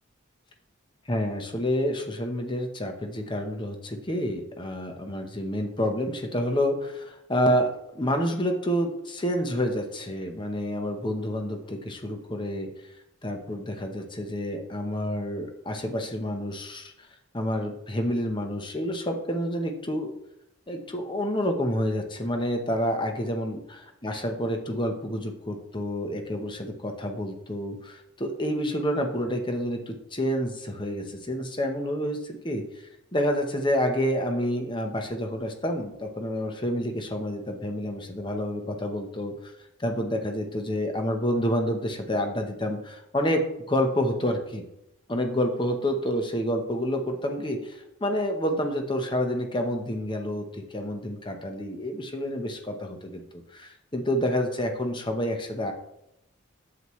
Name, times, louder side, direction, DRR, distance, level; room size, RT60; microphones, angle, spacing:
voice 1, 1.1-7.7 7.9-12.7 13.2-16.9 17.3-20.1 20.7-39.5 39.8-44.6 45.1-55.7, equal, 25° left, 4 dB, 1.0 m, -28 dB
8.8 x 7.8 x 3.2 m, 0.83 s
head